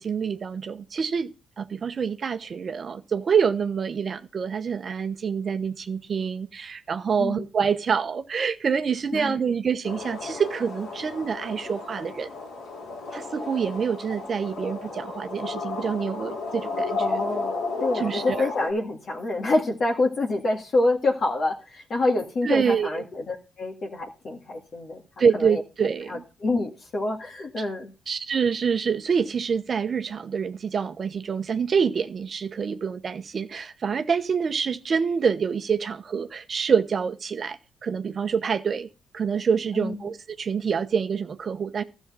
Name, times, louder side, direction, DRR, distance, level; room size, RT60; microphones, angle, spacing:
voice 1, 0.0-12.3 13.1-17.2 17.9-18.5 22.4-23.0 25.2-26.2 28.1-38.9 39.1-41.8, right 6 dB, 45° right, 0.9 m, -26 dB
sound 1, 9.8-18.7, left 3 dB, 75° left, 4.1 m, -33 dB
voice 2, 17.0-25.0 25.3-25.6 26.1-27.9 39.7-40.0, left 2 dB, 50° left, 2.0 m, -27 dB
12.5 x 7.1 x 5.5 m
cardioid pair, 90°, 0 cm